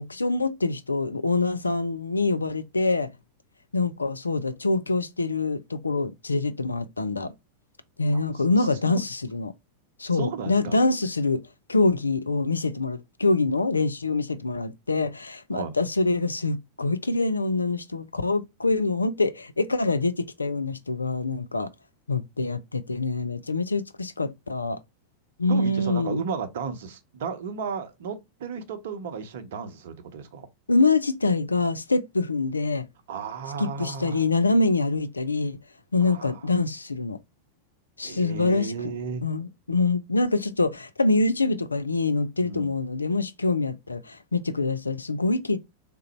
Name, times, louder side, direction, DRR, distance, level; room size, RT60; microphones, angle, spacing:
voice 1, 0.0-3.1 3.7-7.3 8.0-9.5 10.0-11.4 11.7-21.7 22.1-24.8 25.4-26.3 30.7-32.8 33.6-35.6 35.9-37.2 38.0-38.7 39.2-45.6, left 3 dB, 80° left, 0.4 m, -25 dB
voice 2, 8.1-9.0 10.1-10.8 15.5-15.7 25.5-30.5 33.1-34.3 36.0-36.4 38.0-39.2 42.4-42.7, right 5 dB, 55° right, 0.7 m, -34 dB
3.7 x 2.0 x 4.1 m
figure-of-eight pair, 90°, 0 cm